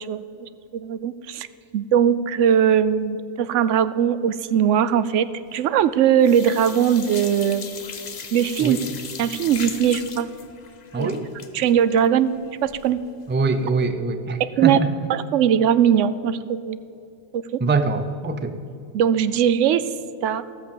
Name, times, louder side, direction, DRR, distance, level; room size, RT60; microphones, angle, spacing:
voice 1, 0.1-1.5 1.7-7.7 8.3-8.8 9.2-10.3 10.9-11.1 11.5-12.3 12.6-13.0 14.6-14.8 15.1-16.8 17.3-17.6 18.9-19.8 20.2-20.4, right 9 dB, 90° right, 14 dB, 0.9 m, -20 dB
sound 1, 5.5-5.9 6.2-13.1 13.4-13.5 13.8-13.9, left 6 dB, 45° left, 0.7 m, -38 dB
voice 2, 10.9-11.2 13.3-14.9 17.6-18.6, right 3 dB, 15° right, 9 dB, 0.4 m, -23 dB
15.0 x 6.7 x 7.1 m, 2.7 s
omnidirectional pair, 1.2 m